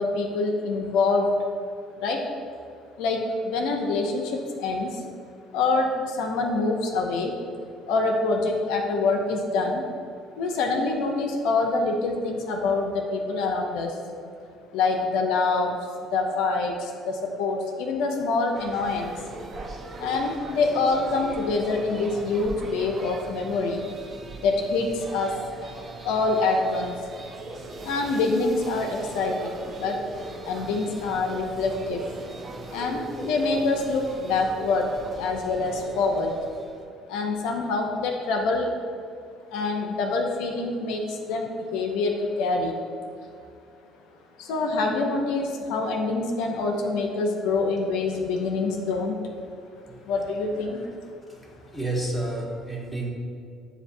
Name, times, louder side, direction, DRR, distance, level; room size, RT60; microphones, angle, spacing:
voice 1, 0.0-1.3 2.0-2.2 3.0-5.0 5.5-7.4 7.9-9.8 10.4-14.0 14.7-15.8 16.1-19.1 20.0-23.8 24.4-25.7 26.0-27.0 27.8-30.0 30.4-32.0 32.7-36.3 37.1-38.7 39.5-42.8 44.4-49.2 50.0-50.9, left 3 dB, 80° left, 2 dB, 0.5 m, -25 dB
sound 1, 18.5-36.9, right 2 dB, 40° right, 0.5 m, -39 dB
voice 2, 51.3-53.1, right 2 dB, ahead, -4 dB, 1.2 m, -31 dB
7.7 x 2.6 x 2.6 m, 2.4 s
supercardioid pair, 80°, 0 cm